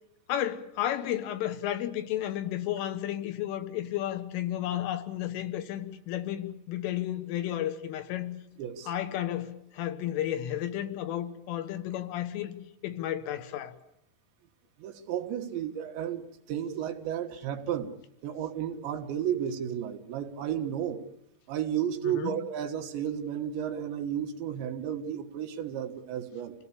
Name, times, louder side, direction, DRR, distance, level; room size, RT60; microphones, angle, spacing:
voice 1, 0.3-8.3 8.9-12.6 12.8-13.7 22.1-22.4, left 12 dB, 90° left, 9 dB, 4.0 m, -32 dB
voice 2, 8.6-8.9 14.8-17.9 18.2-21.0 21.5-26.5, right 9 dB, 70° right, 4 dB, 3.5 m, -33 dB
27.5 x 17.5 x 8.5 m, 0.86 s
omnidirectional pair, 5.6 m